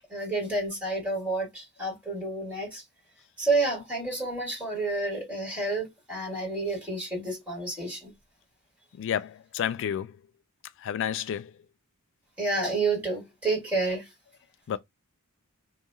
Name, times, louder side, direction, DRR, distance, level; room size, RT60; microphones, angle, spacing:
voice 1, 0.1-2.8 3.4-8.1 12.4-14.1, right 2 dB, 10° right, 1.9 m, -29 dB
voice 2, 8.9-10.2 10.8-11.5 14.7-14.8, left 9 dB, 60° left, 0.3 m, -30 dB
3.0 x 2.6 x 2.3 m
head